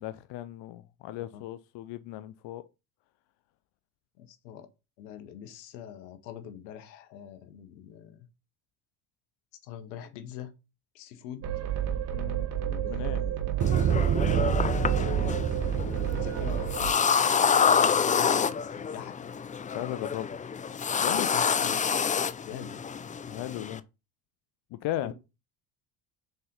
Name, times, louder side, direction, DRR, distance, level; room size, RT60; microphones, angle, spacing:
voice 1, 0.0-2.6 12.1-12.5 12.9-13.2 17.7-18.2 19.7-20.4 21.0-21.3 23.3-23.8 24.7-25.1, left 13 dB, 60° left, 0.7 m, -36 dB
voice 2, 4.2-4.7 5.0-8.3 9.6-10.5 10.9-11.5 12.6-13.6 14.7-15.5 15.8-16.7 18.0-19.3 21.2-21.8 22.4-22.8 25.0-25.1, left 9 dB, 90° left, 1.3 m, -44 dB
sound 1, 11.4-16.8, right 8 dB, 30° right, 0.7 m, -29 dB
sound 2, 11.4-16.9, right 10 dB, 75° right, 2.5 m, -33 dB
sound 3, 13.6-23.8, left 6 dB, 20° left, 0.4 m, -28 dB
6.7 x 4.3 x 3.9 m
supercardioid pair, 75°, 49 cm